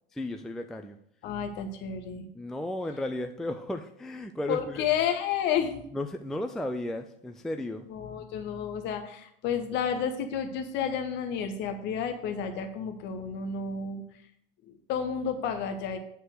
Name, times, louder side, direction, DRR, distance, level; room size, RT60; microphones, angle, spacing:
voice 1, 0.1-1.0 2.3-4.8 5.9-7.8, left 1 dB, ahead, 6 dB, 0.4 m, -34 dB
voice 2, 1.2-2.3 4.5-5.8 7.9-14.0 14.7-16.0, left 7 dB, 40° left, 6 dB, 1.1 m, -31 dB
9.2 x 4.3 x 6.4 m, 0.70 s
figure-of-eight pair, 80°, 29 cm